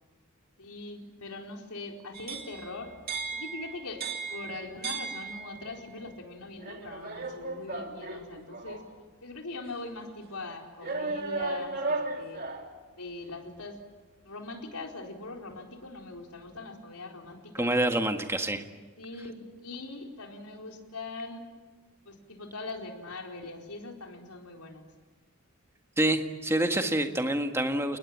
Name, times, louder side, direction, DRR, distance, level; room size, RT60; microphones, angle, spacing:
voice 1, 0.6-3.0 3.3-8.8 9.2-12.4 12.9-13.8 14.2-17.7 19.0-21.4 22.0-24.9, left 3 dB, 90° left, 2 dB, 4.4 m, -41 dB
sound 1, 2.1-5.8 6.6-8.9 9.6-9.7 10.8-12.8, right 3 dB, 45° right, 2.9 m, -36 dB
voice 2, 17.6-18.6 26.0-28.0, right 1 dB, 10° right, 6 dB, 1.7 m, -27 dB
30.0 x 20.0 x 8.8 m, 1.3 s
head